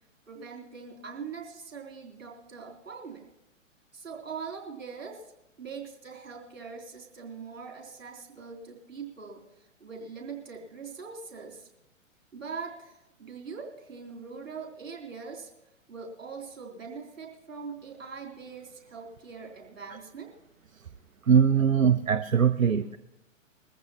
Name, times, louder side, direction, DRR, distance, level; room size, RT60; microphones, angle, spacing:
voice 1, 0.3-3.3 3.9-5.3 5.6-11.7 12.3-15.5 15.9-20.3, right 5 dB, 70° right, -1 dB, 3.8 m, -42 dB
voice 2, 21.3-23.0, right 7 dB, 90° right, 12 dB, 0.6 m, -21 dB
21.5 x 14.5 x 3.0 m, 0.92 s
figure-of-eight pair, 120°, 39 cm